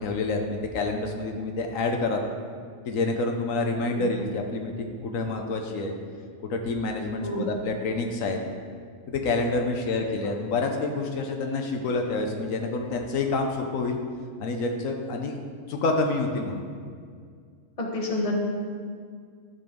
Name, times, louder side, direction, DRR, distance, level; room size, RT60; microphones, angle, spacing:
voice 1, 0.0-2.2 2.8-5.9 6.4-8.4 9.1-14.0 14.4-15.4 15.7-16.7, left 3 dB, 80° left, 3 dB, 1.2 m, -28 dB
voice 2, 7.2-7.5 17.8-18.3, left 1 dB, 30° left, -1 dB, 1.2 m, -29 dB
12.5 x 4.4 x 5.1 m, 2.1 s
omnidirectional pair, 1.4 m